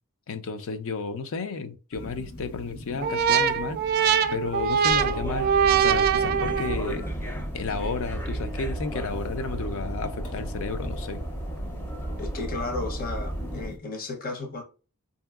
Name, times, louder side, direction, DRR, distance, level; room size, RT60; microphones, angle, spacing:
voice 1, 0.3-4.1 4.3-7.0 7.5-11.2, left 4 dB, 65° left, 0.5 m, -32 dB
sound 1, 1.9-13.8, left 1 dB, 80° left, 1.1 m, -42 dB
sound 2, 3.0-6.9, right 7 dB, 45° right, 0.3 m, -23 dB
sound 3, 4.9-13.7, right 1 dB, 10° left, 0.5 m, -34 dB
voice 2, 12.2-14.6, left 3 dB, 40° left, 0.8 m, -34 dB
4.6 x 2.6 x 2.3 m
head